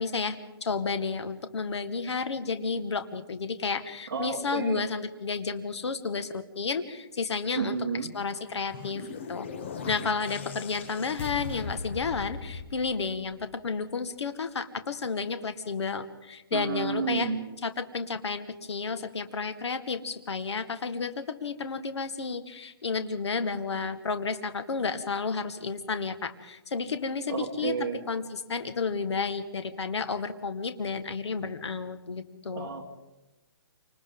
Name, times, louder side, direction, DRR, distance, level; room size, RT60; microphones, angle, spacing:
voice 1, 0.0-7.8 8.1-9.5 9.8-17.3 17.6-32.7, left 4 dB, 80° left, 10 dB, 1.8 m, -32 dB
voice 2, 4.1-4.8 7.5-8.1 16.5-17.4 27.3-28.1 32.5-32.9, right 6 dB, 45° right, -2 dB, 2.1 m, -31 dB
sound 1, 8.3-13.7, left 5 dB, 25° left, 0.8 m, -39 dB
28.5 x 26.0 x 3.9 m, 0.99 s
hypercardioid pair, 180°, 14 cm